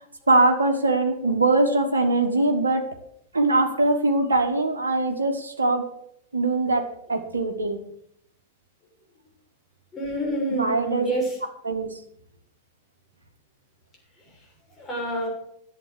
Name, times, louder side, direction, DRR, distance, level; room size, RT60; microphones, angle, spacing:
voice 1, 0.3-2.9 3.3-5.8 6.3-7.8 10.5-11.1 11.6-12.0, right 2 dB, 75° right, 4 dB, 1.5 m, -22 dB
voice 2, 9.9-11.4 14.8-15.3, right 1 dB, 20° left, -2 dB, 6.6 m, -27 dB
11.5 x 8.0 x 8.1 m, 0.70 s
figure-of-eight pair, 90°, 0 cm